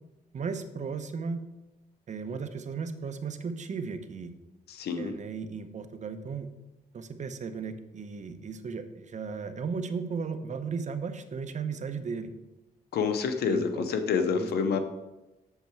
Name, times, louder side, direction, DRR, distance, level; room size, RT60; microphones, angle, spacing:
voice 1, 0.3-1.4 2.1-4.3 5.0-6.5 6.9-12.3 13.5-13.9 14.2-14.7, right 5 dB, 50° right, 9 dB, 0.8 m, -35 dB
voice 2, 4.7-5.2 12.9-14.8, left 6 dB, 90° left, 8 dB, 0.8 m, -28 dB
8.0 x 6.8 x 4.6 m, 1.0 s
cardioid pair, 100°, 16 cm